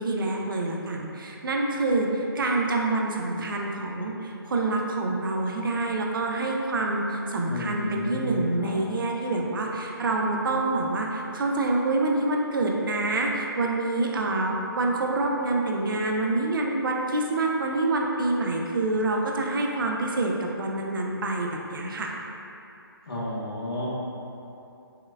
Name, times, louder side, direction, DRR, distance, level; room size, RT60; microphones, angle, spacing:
voice 1, 0.0-22.1, right 2 dB, 60° right, 0 dB, 0.5 m, -27 dB
voice 2, 7.5-8.8 23.1-23.9, equal, 85° left, -7 dB, 1.2 m, -32 dB
5.5 x 2.1 x 2.2 m, 2.8 s
hypercardioid pair, 155°, 13 cm